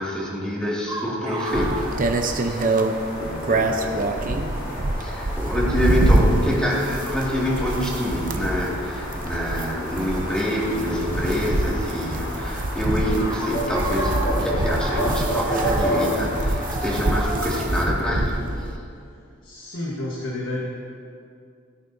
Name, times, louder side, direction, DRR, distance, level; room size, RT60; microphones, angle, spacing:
voice 1, 0.0-1.9 2.2-2.8 3.2-4.7 5.0-18.7, equal, 5° left, -5 dB, 2.0 m, -26 dB
sound 1, 0.9-3.0 3.2-3.3 4.3-4.6 5.6-5.8 6.6-7.0 9.7-9.8 11.1-12.0 12.3-18.8, right 2 dB, 20° right, 1.5 m, -33 dB
sound 2, 1.4-17.6, equal, 45° left, 2.4 m, -32 dB
sound 3, 1.5-18.8, right 2 dB, 40° right, 0.7 m, -25 dB
voice 2, 19.4-20.6, left 1 dB, 70° left, -3 dB, 1.4 m, -30 dB
16.5 x 9.5 x 2.7 m, 2.4 s
head